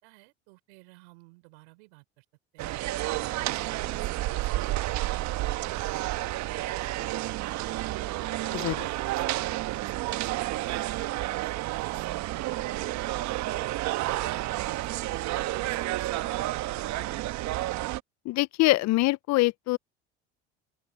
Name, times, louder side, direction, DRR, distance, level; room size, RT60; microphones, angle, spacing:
voice 1, 0.0-2.3 2.5-3.1 3.4-7.8 8.3-9.3 9.6-12.3 12.7-16.3, right 27 dB, 75° right, 3.7 m, -54 dB
sound 1, 2.6-18.0, right 16 dB, 55° right, 1.2 m, -30 dB
voice 2, 18.3-19.8, left 20 dB, 55° left, 0.6 m, -24 dB
open air
hypercardioid pair, 75°, 33 cm